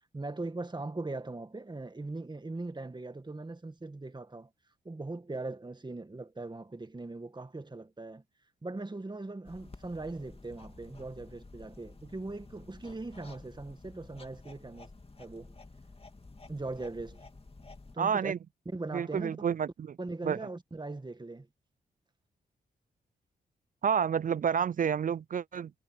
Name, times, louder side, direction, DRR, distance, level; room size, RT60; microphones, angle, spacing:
voice 1, 0.1-4.5 4.9-8.2 8.6-14.9 15.2-15.6 16.5-17.2 17.9-18.3 18.7-19.4 20.0-21.5, right 2 dB, 25° right, 1.9 m, -40 dB
sound 1, 9.4-18.0, left 3 dB, 30° left, 2.8 m, -52 dB
voice 2, 18.0-18.4 18.9-19.9 20.2-20.4 23.8-25.7, right 7 dB, 45° right, 0.4 m, -29 dB
supercardioid pair, 50°, 19 cm